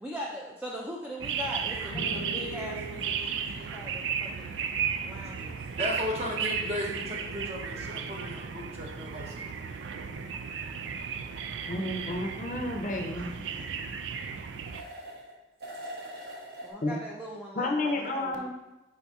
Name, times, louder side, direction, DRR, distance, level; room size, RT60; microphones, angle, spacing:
voice 1, 0.0-4.7 5.1-5.6 16.0-16.1 16.6-18.5, equal, 10° right, -3 dB, 0.4 m, -40 dB
sound 1, 1.2-14.8, right 6 dB, 85° right, 0.3 m, -35 dB
sound 2, 1.9-5.5, right 1 dB, 80° left, 0.8 m, -43 dB
voice 2, 5.8-9.5, equal, 35° right, -2 dB, 0.8 m, -35 dB
sound 3, 10.9-11.0 14.7-15.3 15.6-16.7, right 1 dB, 60° right, 1.0 m, -42 dB
voice 3, 11.6-13.6 16.8-17.0 17.6-18.5, left 2 dB, 45° left, 2 dB, 0.6 m, -31 dB
5.2 x 4.1 x 2.3 m, 1.0 s
head